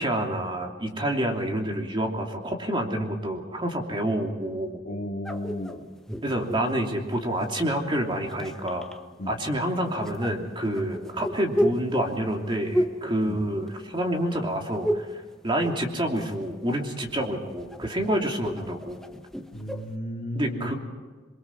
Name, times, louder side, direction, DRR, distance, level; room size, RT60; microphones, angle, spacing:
voice 1, 0.0-4.8 6.2-8.9 9.3-19.0 20.3-20.7, right 1 dB, 25° right, 2 dB, 3.0 m, -28 dB
voice 2, 4.8-5.8 9.2-9.4 13.2-13.4 19.5-20.7, left 1 dB, 50° left, -2 dB, 2.4 m, -34 dB
sound 1, 5.2-7.4 8.2-9.0 10.1-14.1 14.3-15.2 15.5-16.4 16.7-19.9, equal, 5° left, 1.1 m, -32 dB
28.0 x 23.0 x 4.7 m, 1.4 s
head